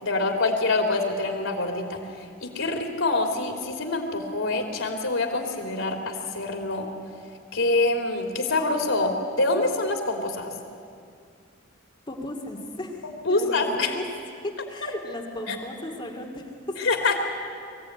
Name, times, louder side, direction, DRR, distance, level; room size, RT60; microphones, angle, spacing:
voice 1, 0.0-6.9 7.5-10.5 13.2-14.0 14.8-14.9 15.5-15.6 16.8-17.2, left 2 dB, 80° left, 3 dB, 3.1 m, -25 dB
voice 2, 12.1-14.0 14.7-16.8, left 1 dB, 25° left, 1 dB, 2.3 m, -36 dB
23.0 x 15.5 x 9.6 m, 2.3 s
head